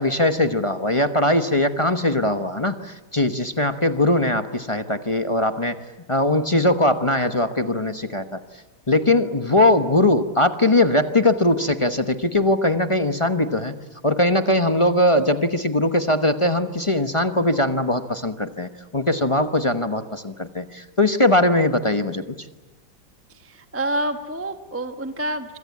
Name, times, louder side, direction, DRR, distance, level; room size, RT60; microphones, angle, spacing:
voice 1, 0.0-5.8 6.1-8.4 8.9-13.7 14.0-22.5, left 1 dB, 25° left, 8 dB, 0.7 m, -20 dB
voice 2, 23.3-25.6, right 1 dB, 10° right, 7 dB, 1.0 m, -28 dB
26.0 x 25.5 x 8.5 m, 1.1 s
omnidirectional pair, 2.0 m